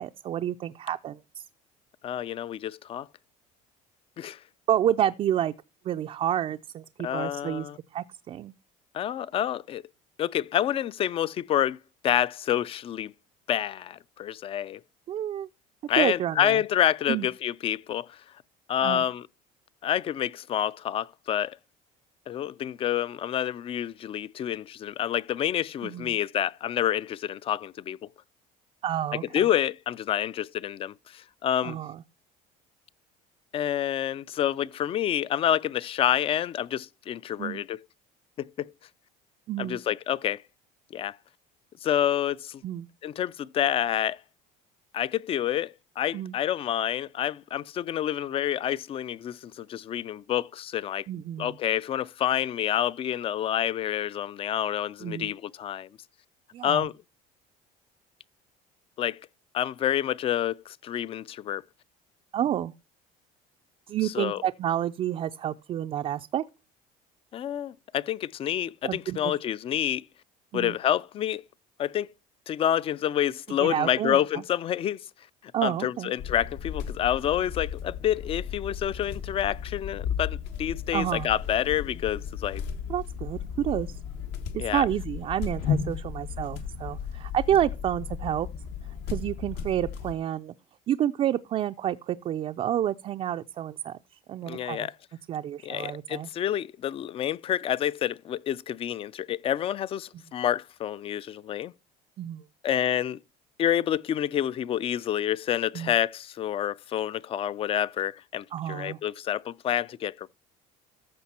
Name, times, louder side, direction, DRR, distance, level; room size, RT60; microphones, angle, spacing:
voice 1, 0.0-1.4 4.7-5.5 5.8-8.5 15.1-15.5 16.0-16.6 17.1-17.3 18.8-19.1 25.8-26.2 28.8-29.2 31.6-32.0 37.4-37.6 39.5-39.8 42.6-42.9 46.1-46.3 51.1-51.5 55.0-55.3 56.5-56.9 62.3-62.7 63.9-66.4 68.8-69.3 70.5-70.7 73.6-74.2 75.5-76.1 80.9-81.3 82.9-84.0 84.5-88.5 89.1-90.5 90.9-94.9 95.3-96.3 102.2-102.4 105.7-105.9 108.5-109.0, right 11 dB, 35° right, 0.4 m, -29 dB
voice 2, 2.0-3.1 4.2-4.4 7.0-7.8 8.9-9.8 10.2-11.8 12.0-13.1 13.5-14.8 15.9-18.2 18.7-19.3 19.8-21.6 22.3-28.0 29.3-31.8 33.5-37.8 38.4-38.7 39.6-40.4 40.9-41.2 41.8-42.6 43.0-44.2 44.9-51.1 51.4-55.9 56.6-56.9 59.0-59.2 59.5-61.6 64.0-64.4 67.3-70.0 70.5-71.4 71.8-72.1 72.5-75.0 75.6-82.6 84.6-84.9 94.5-94.9 95.6-101.7 102.6-103.2 103.6-110.3, left 10 dB, 35° left, 0.4 m, -28 dB
sound 1, 76.2-90.2, left 7 dB, 75° left, 1.7 m, -34 dB
14.0 x 5.2 x 4.2 m
cardioid pair, 145°, 17 cm